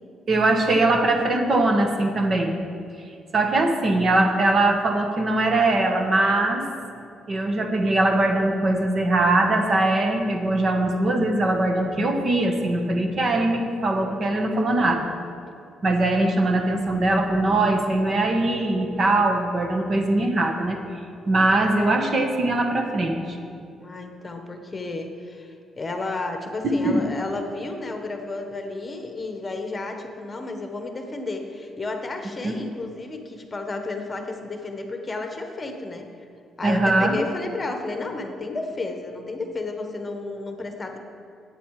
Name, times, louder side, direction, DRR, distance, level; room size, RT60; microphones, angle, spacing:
voice 1, 0.3-2.5 3.3-6.6 7.3-15.1 15.8-20.8 21.3-23.4 26.6-27.0 32.4-32.5 36.6-37.2, right 2 dB, 45° right, 4 dB, 1.4 m, -21 dB
voice 2, 23.8-36.0 36.6-41.0, left 3 dB, 25° left, 4 dB, 1.3 m, -32 dB
12.0 x 9.2 x 4.9 m, 2.5 s
cardioid pair, 90°, 0 cm